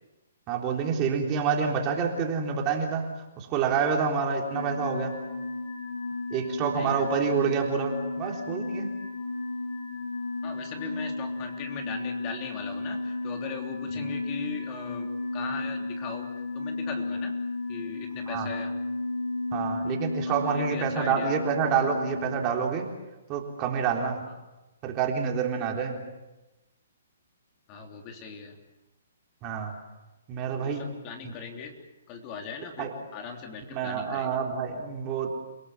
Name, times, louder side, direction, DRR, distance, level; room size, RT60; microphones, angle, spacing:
voice 1, 0.5-3.1 3.4-5.2 6.3-8.9 13.9-14.1 18.3-18.5 19.5-22.9 23.3-24.2 24.8-26.0 29.4-29.7 30.3-30.8 31.2-31.3 32.8-32.9 33.7-35.3, right 6 dB, 25° right, 1 dB, 3.8 m, -28 dB
sound 1, 4.5-22.4, left 3 dB, 90° left, 6.0 m, -34 dB
voice 2, 6.7-7.1 10.4-17.4 17.7-18.7 20.2-21.3 24.3-24.4 27.7-28.6 30.6-31.7 32.1-34.4, left 5 dB, 30° left, 3 dB, 3.3 m, -39 dB
29.5 x 18.0 x 7.4 m, 1.1 s
hypercardioid pair, 150°, 0 cm